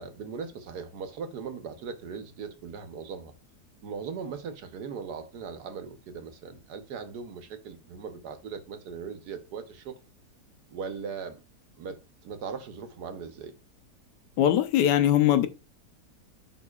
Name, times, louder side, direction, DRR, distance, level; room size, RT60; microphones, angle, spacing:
voice 1, 0.0-3.3 3.8-10.0 10.7-11.4 11.7-13.5, right 6 dB, 70° right, 1.4 m, -39 dB
voice 2, 14.4-15.5, left 11 dB, 85° left, 1.3 m, -21 dB
11.0 x 3.8 x 2.4 m
omnidirectional pair, 1.8 m